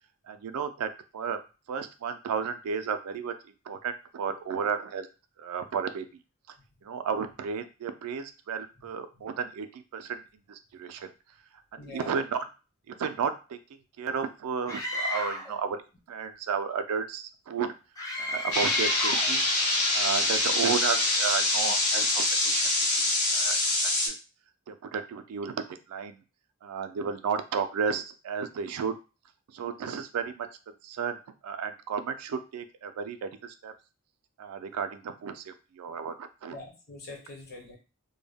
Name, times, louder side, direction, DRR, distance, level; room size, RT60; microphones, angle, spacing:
voice 1, 0.3-1.4 1.7-3.3 3.7-5.1 5.4-6.1 6.8-10.2 10.5-11.1 11.7-12.4 13.0-13.6 14.0-15.8 16.1-17.7 18.2-19.4 19.9-22.7 23.0-23.1 23.3-23.6 24.1-24.2 24.7-26.2 26.6-28.9 29.5-30.5 30.8-33.7 34.4-36.6, right 6 dB, 75° right, 9 dB, 0.3 m, -33 dB
voice 2, 11.8-12.2 36.5-37.8, left 2 dB, 45° left, 0 dB, 0.9 m, -43 dB
Screaming, 14.7-15.5 18.0-19.3, left 1 dB, 15° left, 0.5 m, -33 dB
sound 1, 18.5-24.1, left 2 dB, 85° left, 0.7 m, -25 dB
2.1 x 2.1 x 3.3 m, 0.32 s
head